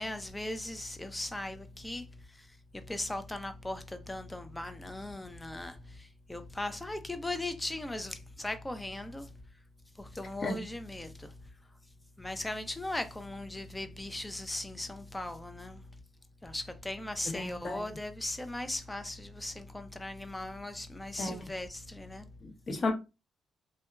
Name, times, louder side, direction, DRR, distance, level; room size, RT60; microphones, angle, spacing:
voice 1, 0.0-9.4 10.0-11.4 12.2-16.0 16.4-22.3, left 1 dB, 10° left, 0.4 m, -38 dB
voice 2, 17.3-17.8 21.2-21.4 22.4-22.9, left 3 dB, 35° left, 0.8 m, -34 dB
2.7 x 2.2 x 2.3 m
cardioid pair, 90°, 0 cm